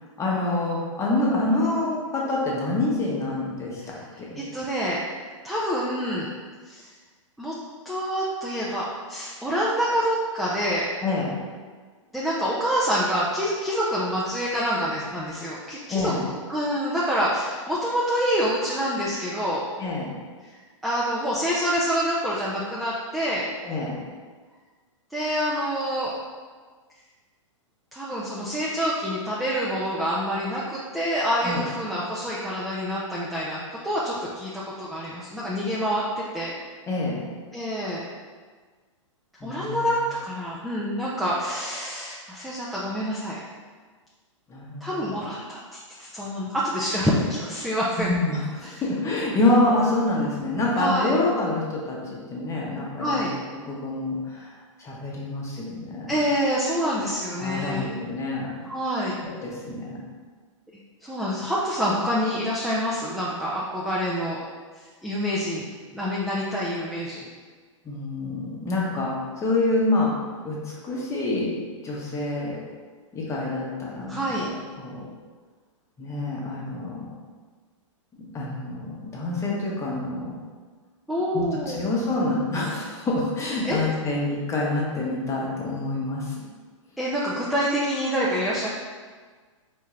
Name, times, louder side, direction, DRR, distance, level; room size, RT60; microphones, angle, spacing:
voice 1, 0.2-4.4 11.0-11.4 15.9-16.2 19.8-20.1 23.6-24.0 31.4-31.6 36.9-37.2 39.4-39.9 44.5-45.2 48.0-53.2 53.6-54.5 54.8-56.2 57.4-58.5 59.2-60.0 67.8-70.1 70.4-71.5 71.8-72.6 73.1-74.5 74.8-75.0 76.0-77.1 78.3-80.4 81.3-86.3, left 2 dB, 15° left, -4 dB, 0.9 m, -27 dB
voice 2, 4.4-5.0 5.4-6.3 6.6-6.9 7.4-7.5 7.9-10.9 12.1-19.6 20.8-23.4 25.1-26.1 27.9-36.5 37.5-38.0 39.4-43.4 44.8-45.6 46.0-48.1 48.6-48.7 50.8-51.1 53.0-53.3 56.1-57.9 58.6-59.1 61.0-64.4 65.0-65.7 65.9-67.3 74.1-74.5 81.1-81.8 83.6-83.8 87.0-88.7, equal, ahead, -7 dB, 0.4 m, -27 dB
4.3 x 2.4 x 3.1 m, 1.5 s
hypercardioid pair, 115°, 17 cm